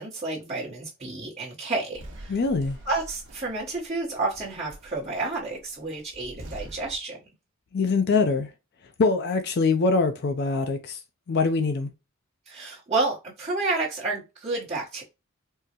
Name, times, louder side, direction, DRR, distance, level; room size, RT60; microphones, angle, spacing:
voice 1, 0.0-2.4 2.8-7.2 12.5-15.0, right 3 dB, 30° right, 0.9 m, -30 dB
sound 1, 1.9-7.0, right 1 dB, 60° right, 0.9 m, -45 dB
voice 2, 2.3-2.8 7.7-8.5 9.0-11.0 11.3-11.9, left 4 dB, 50° left, 0.4 m, -23 dB
3.6 x 2.1 x 2.8 m
head